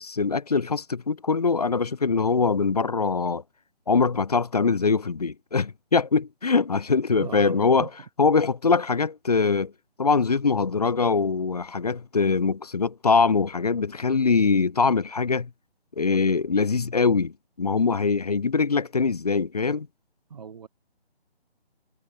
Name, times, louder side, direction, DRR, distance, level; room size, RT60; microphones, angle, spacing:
voice 1, 0.0-3.4 3.9-7.9 8.2-9.7 10.0-15.5 16.0-19.9, left 4 dB, 40° left, 0.5 m, -23 dB
voice 2, 7.2-7.9 20.3-20.7, right 6 dB, 40° right, 2.2 m, -38 dB
figure-of-eight pair, 155°, 32 cm